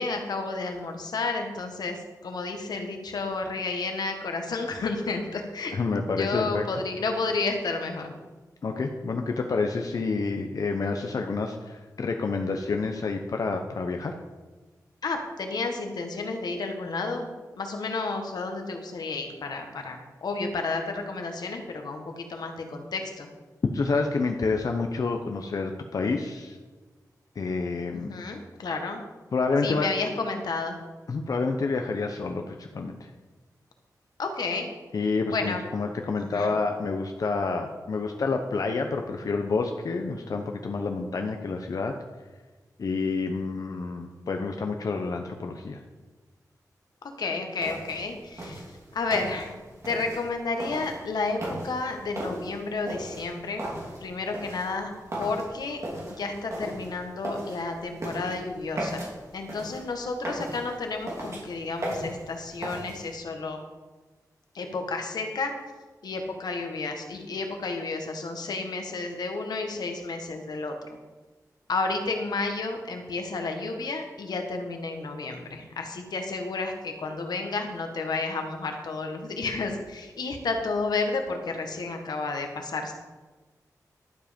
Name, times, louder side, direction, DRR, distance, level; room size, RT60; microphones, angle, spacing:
voice 1, 0.0-5.7 6.2-8.1 15.0-17.3 17.6-23.3 27.9-29.0 29.6-30.8 34.2-34.7 35.3-35.6 36.2-36.6 47.0-48.7 48.9-49.6 49.8-53.7 54.0-54.9 55.2-55.8 56.2-59.0 59.3-63.6 64.5-65.5 66.0-70.7 71.7-82.9, left 3 dB, 90° left, 4 dB, 1.5 m, -31 dB
voice 2, 5.7-6.7 8.6-14.1 23.7-26.6 27.4-28.1 29.3-29.9 31.1-33.1 34.9-41.9 42.8-45.8, left 4 dB, 60° left, 4 dB, 0.8 m, -28 dB
sound 1, 47.6-63.1, right 1 dB, 50° right, 3.7 m, -38 dB
12.0 x 7.4 x 5.2 m, 1.3 s
wide cardioid pair, 115°, 7 cm